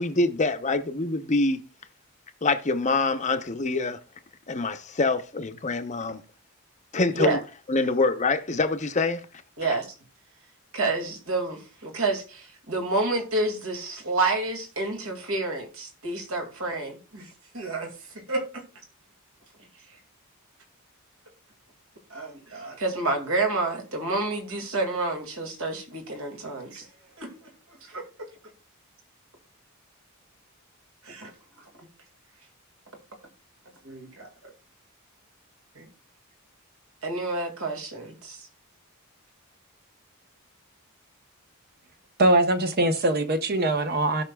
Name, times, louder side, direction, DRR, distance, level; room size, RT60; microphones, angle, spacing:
voice 1, 0.0-1.6 2.4-4.0 4.5-6.2 6.9-7.4 7.7-9.3 9.7-9.8, left 3 dB, 35° left, 0.7 m, -25 dB
voice 2, 9.6-9.9 10.7-18.6 22.1-26.9 27.2-27.5 27.8-28.0 31.0-31.3 33.8-34.5 35.8-35.9 37.0-38.4, right 2 dB, 70° right, 2.2 m, -29 dB
voice 3, 42.2-44.2, right 1 dB, 45° right, 0.8 m, -22 dB
17.0 x 5.7 x 2.3 m
head